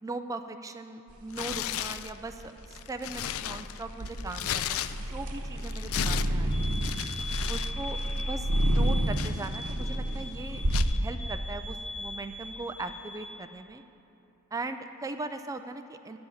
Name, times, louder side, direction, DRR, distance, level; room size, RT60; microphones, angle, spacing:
voice 1, 0.0-6.8 7.5-10.6 10.9-13.8 14.5-16.2, right 3 dB, 15° right, 7 dB, 0.3 m, -39 dB
sound 1, 1.1-10.8, right 1 dB, 75° right, 1.1 m, -30 dB
Tearing, 1.3-2.1 2.6-5.3 5.6-7.7 8.0-8.2 8.7-9.9 10.7-11.0, left 12 dB, 65° left, 0.3 m, -35 dB
sound 2, 6.5-13.3, left 2 dB, 45° left, 1.9 m, -41 dB
9.5 x 7.8 x 7.1 m, 3.0 s
head